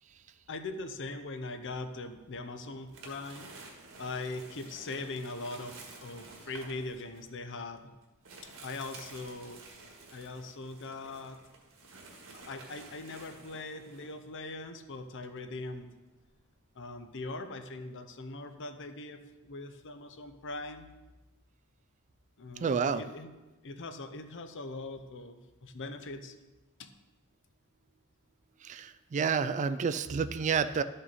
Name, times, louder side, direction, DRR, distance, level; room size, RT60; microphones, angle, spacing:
voice 1, 0.5-3.5 4.0-7.9 8.4-9.6 10.1-11.4 12.5-15.9 16.8-20.9 22.4-23.3 23.6-26.3 26.8-26.9, left 2 dB, 60° left, 8 dB, 0.8 m, -41 dB
sound 1, 1.2-2.2 2.6-16.7, right 3 dB, 65° right, 1.6 m, -52 dB
voice 2, 22.6-23.0 28.6-30.8, right 6 dB, 35° right, 12 dB, 0.3 m, -29 dB
12.0 x 5.5 x 4.1 m, 1.1 s
head